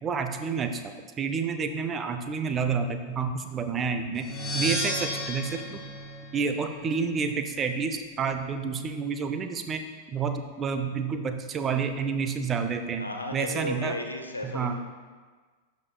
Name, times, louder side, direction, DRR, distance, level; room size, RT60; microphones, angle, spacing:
voice 1, 0.0-4.3 4.5-5.8 6.3-13.0 13.3-14.0 14.4-14.8, right 5 dB, 25° right, 7 dB, 0.6 m, -29 dB
sound 1, 4.2-7.0, equal, 20° left, 1.8 m, -33 dB
voice 2, 13.0-14.8, left 1 dB, 80° left, 3 dB, 0.7 m, -34 dB
12.0 x 5.2 x 2.3 m, 1.4 s
figure-of-eight pair, 90°, 0 cm